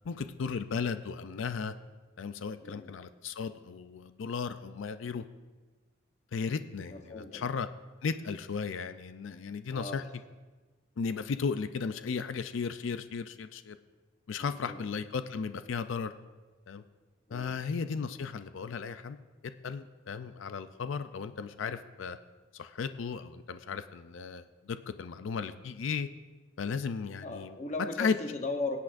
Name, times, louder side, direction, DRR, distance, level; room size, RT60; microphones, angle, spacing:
voice 1, 0.0-1.7 2.2-5.2 6.3-7.7 8.0-10.0 11.0-13.8 14.3-16.1 16.7-16.8 17.3-19.2 19.6-22.2 22.5-26.1 26.6-27.5 28.0-28.1, left 5 dB, 85° left, 11 dB, 0.4 m, -35 dB
voice 2, 2.6-3.0 6.9-7.5 9.7-10.1 14.4-14.8 17.3-17.6 27.2-28.8, left 3 dB, 35° left, 4 dB, 0.9 m, -38 dB
23.0 x 8.4 x 2.6 m, 1.3 s
head